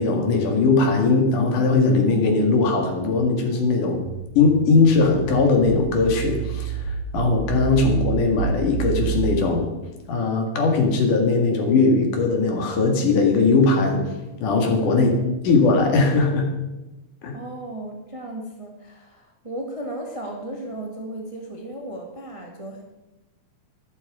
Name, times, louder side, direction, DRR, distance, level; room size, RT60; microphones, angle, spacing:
voice 1, 0.0-4.0 4.4-9.7 10.1-14.1 14.4-15.2 15.5-16.5 17.2-17.4, left 3 dB, 85° left, 3 dB, 3.5 m, -19 dB
sound 1, 4.1-9.4, right 9 dB, 80° right, 2.1 m, -28 dB
voice 2, 14.9-15.2 17.3-22.8, right 1 dB, 30° right, 1 dB, 0.6 m, -35 dB
13.0 x 11.5 x 4.9 m, 1.0 s
omnidirectional pair, 3.5 m